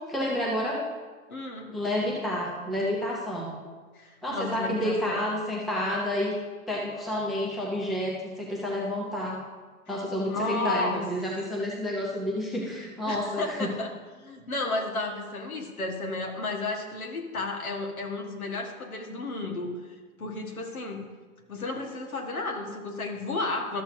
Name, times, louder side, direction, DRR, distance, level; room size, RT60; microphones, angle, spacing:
voice 1, 0.1-0.8 1.7-3.5 4.2-6.3 6.7-8.1 8.4-9.4 9.9-13.7, left 1 dB, ahead, -4 dB, 0.5 m, -29 dB
voice 2, 1.3-1.7 3.9-5.2 9.9-10.0 10.3-11.0 13.1-13.9 14.2-19.8 20.2-21.0 21.5-23.8, left 2 dB, 70° left, 1 dB, 1.7 m, -33 dB
13.0 x 7.0 x 2.8 m, 1.4 s
figure-of-eight pair, 110°, 44 cm